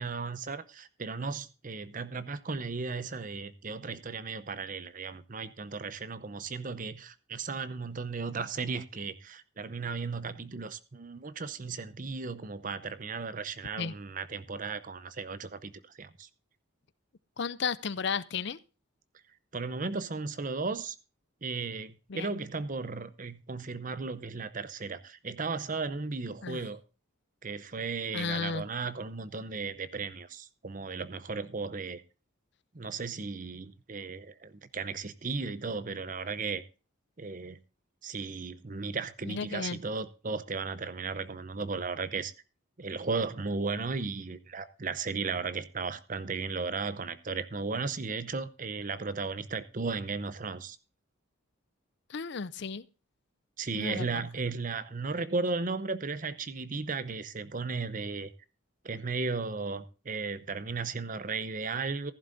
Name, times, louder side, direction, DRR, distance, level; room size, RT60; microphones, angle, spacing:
voice 1, 0.0-15.7 16.0-16.3 19.5-21.0 21.4-26.8 27.4-32.0 32.7-36.6 37.2-37.6 38.0-42.3 42.8-50.8 53.6-58.3 58.8-62.1, right 4 dB, 40° right, 0.7 m, -35 dB
voice 2, 17.4-18.6 22.1-22.3 26.4-26.6 28.1-28.7 39.3-39.8 52.1-52.8 53.7-54.3, left 5 dB, 55° left, 0.5 m, -34 dB
15.0 x 11.0 x 2.6 m
head